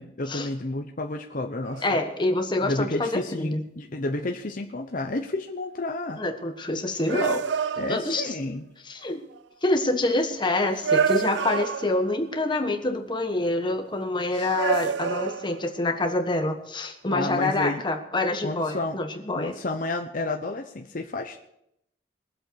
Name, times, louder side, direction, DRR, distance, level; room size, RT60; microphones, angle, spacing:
voice 1, 0.0-2.0 2.6-6.2 7.8-8.6 17.1-17.8 18.4-19.0 19.3-21.4, left 2 dB, 50° left, 3 dB, 0.9 m, -31 dB
sound 1, 1.6-2.0 6.2-6.3 7.1-8.4 9.3-9.4 10.8-12.2 14.3-15.8, right 6 dB, 85° right, 0.4 m, -28 dB
voice 2, 1.8-3.6 6.2-7.5 7.9-8.3 8.8-9.2 9.6-19.6, left 2 dB, 25° left, 5 dB, 1.3 m, -26 dB
22.0 x 7.8 x 4.6 m, 0.78 s
head